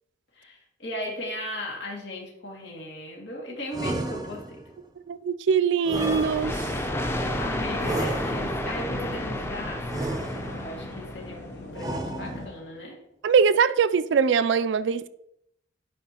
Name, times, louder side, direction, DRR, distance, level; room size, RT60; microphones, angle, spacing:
voice 1, 0.3-4.6 7.4-13.0, left 1 dB, 90° left, 2.2 m, -37 dB
sound 1, 3.7-4.8 5.8-6.9 7.8-8.8 9.9-10.8 11.7-12.7, right 1 dB, 20° right, 0.6 m, -33 dB
voice 2, 5.1-6.5 13.2-15.1, right 6 dB, 85° right, 0.4 m, -22 dB
sound 2, 5.9-11.5, left 1 dB, 15° left, 0.6 m, -31 dB
sound 3, 6.4-12.5, left 1 dB, 65° left, 0.8 m, -40 dB
10.5 x 4.5 x 2.9 m
head